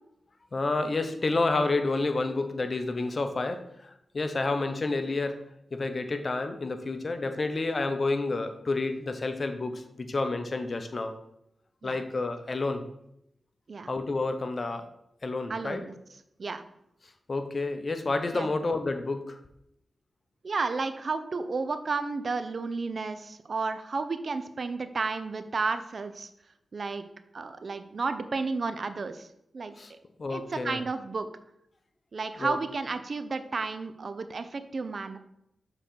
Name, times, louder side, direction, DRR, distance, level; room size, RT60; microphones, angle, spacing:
voice 1, 0.5-5.4 5.7-11.1 11.8-12.8 13.9-14.9 15.2-15.8 17.3-19.4 29.8-29.9 30.2-30.8 32.4-32.6, left 3 dB, 50° left, 8 dB, 0.8 m, -29 dB
voice 2, 15.5-16.0 16.4-16.6 18.3-18.5 20.4-26.3 26.7-27.0 27.3-29.3 29.5-30.0 30.3-31.3 32.1-35.2, right 4 dB, 60° right, 10 dB, 0.5 m, -32 dB
6.5 x 3.9 x 4.5 m, 0.79 s
cardioid pair, 45°, 0 cm